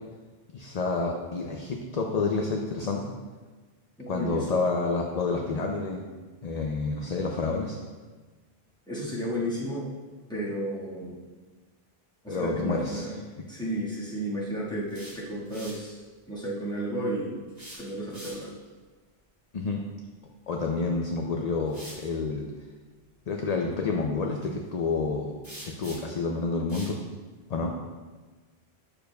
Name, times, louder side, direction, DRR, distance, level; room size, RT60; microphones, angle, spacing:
voice 1, 0.5-3.1 4.1-6.0 6.4-7.8 12.3-13.1 19.5-19.8 20.5-22.5 23.3-25.3 25.6-27.0 27.5-27.7, left 4 dB, 50° left, 1 dB, 0.6 m, -29 dB
voice 2, 4.0-4.5 8.9-9.9 10.3-11.2 12.2-13.2 13.4-16.0 16.3-17.5 17.8-18.5, right 1 dB, 5° left, -7 dB, 1.6 m, -32 dB
sound 1, 14.9-15.9 17.5-18.7 20.7-20.9 21.6-22.1 25.4-26.2 26.7-27.0, right 1 dB, 40° right, 2.0 m, -45 dB
8.8 x 6.6 x 2.3 m, 1.3 s
omnidirectional pair, 1.1 m